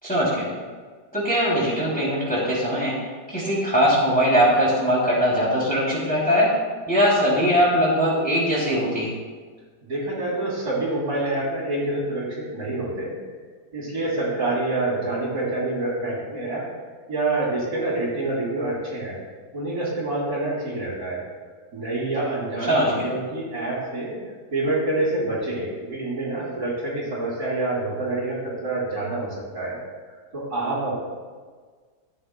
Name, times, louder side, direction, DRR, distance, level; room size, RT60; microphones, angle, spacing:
voice 1, 0.0-0.5 1.1-2.9 3.3-6.5 6.9-9.1 22.7-23.1, equal, 5° left, -6 dB, 2.6 m, -21 dB
voice 2, 9.8-13.1 13.7-16.6 17.1-19.2 19.5-21.2 21.7-24.2 24.5-29.8 30.3-31.0, right 2 dB, 65° right, -6 dB, 3.6 m, -27 dB
14.0 x 9.7 x 2.2 m, 1.5 s
omnidirectional pair, 1.7 m